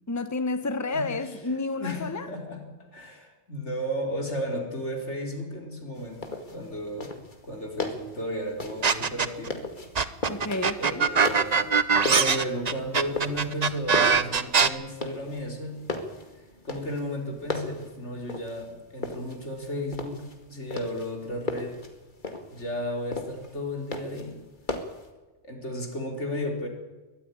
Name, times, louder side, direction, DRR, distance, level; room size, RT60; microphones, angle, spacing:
voice 1, 0.1-2.3 10.3-11.1, left 3 dB, 15° left, 1.0 m, -30 dB
voice 2, 0.9-1.3 1.8-7.1 7.4-9.6 10.8-11.7 12.0-15.9 16.6-21.8 22.5-24.4 25.4-26.7, equal, 85° left, 4.4 m, -34 dB
sound 1, 5.9-25.1, left 2 dB, 45° left, 2.3 m, -37 dB
sound 2, 8.8-9.5 10.0-14.7, right 5 dB, 40° right, 0.9 m, -22 dB
22.5 x 13.5 x 9.9 m
omnidirectional pair, 1.2 m